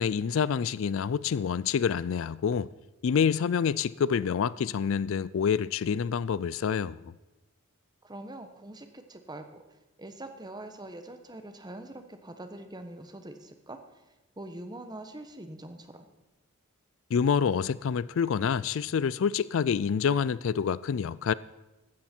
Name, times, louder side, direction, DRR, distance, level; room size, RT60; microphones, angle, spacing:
voice 1, 0.0-2.7 3.0-7.1 17.1-21.3, left 7 dB, 65° left, 0.3 m, -27 dB
voice 2, 8.0-9.6 10.0-16.0, right 1 dB, 20° right, 1.1 m, -44 dB
16.0 x 13.0 x 4.4 m
head